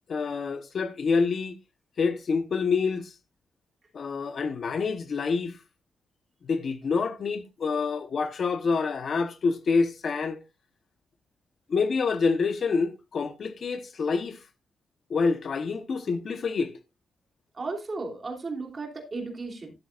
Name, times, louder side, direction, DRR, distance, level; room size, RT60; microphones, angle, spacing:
voice 1, 0.1-1.5 2.0-3.1 3.9-5.6 6.4-10.4 11.7-14.4 15.1-16.7, left 4 dB, 45° left, 0.9 m, -27 dB
voice 2, 17.5-19.7, right 3 dB, 30° right, 2.9 m, -35 dB
13.0 x 11.5 x 2.4 m
wide cardioid pair, 175°, 0 cm